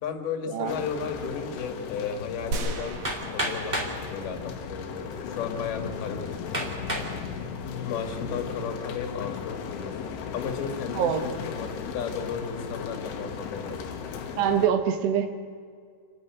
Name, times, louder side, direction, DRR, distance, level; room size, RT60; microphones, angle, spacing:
voice 1, 0.0-3.0 3.3-3.8 4.1-6.9 7.8-13.9, left 6 dB, 70° left, 4 dB, 3.7 m, -34 dB
sound 1, 0.7-14.7, left 6 dB, 90° left, 3.7 m, -36 dB
sound 2, 2.5-4.4 4.8-4.9, right 2 dB, 60° right, 3.0 m, -35 dB
Hammer, 3.0-4.0 4.9-5.0 5.6-5.7 6.5-7.1 7.7-8.2, right 1 dB, 15° right, 1.9 m, -31 dB
voice 2, 14.4-15.3, right 8 dB, 85° right, 7 dB, 3.5 m, -24 dB
28.5 x 10.5 x 9.0 m, 2.1 s
omnidirectional pair, 4.7 m